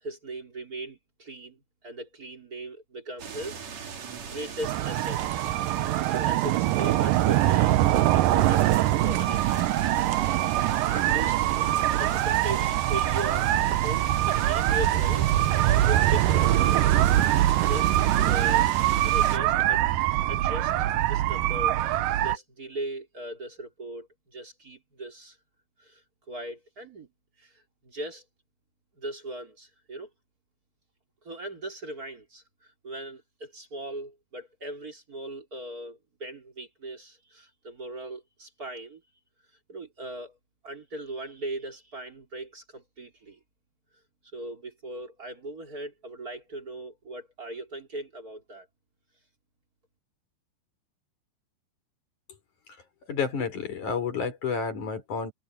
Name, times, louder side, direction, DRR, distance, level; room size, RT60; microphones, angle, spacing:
voice 1, 0.0-3.7 4.2-5.4 5.8-9.7 10.9-13.5 13.8-15.3 15.8-16.8 17.6-17.9 18.2-18.7 19.0-19.8 20.3-21.8 22.2-25.4 25.8-26.0 26.3-27.1 27.4-28.2 28.9-30.1 31.2-39.0 39.7-40.4 40.6-43.4 44.3-48.7, right 1 dB, 25° right, 3.2 m, -39 dB
sound 1, 3.2-19.4, right 6 dB, 45° right, 3.4 m, -39 dB
sound 2, 4.6-22.4, right 14 dB, 80° right, 2.0 m, -23 dB
voice 2, 53.1-55.3, left 5 dB, 45° left, 6.3 m, -30 dB
omnidirectional pair, 4.9 m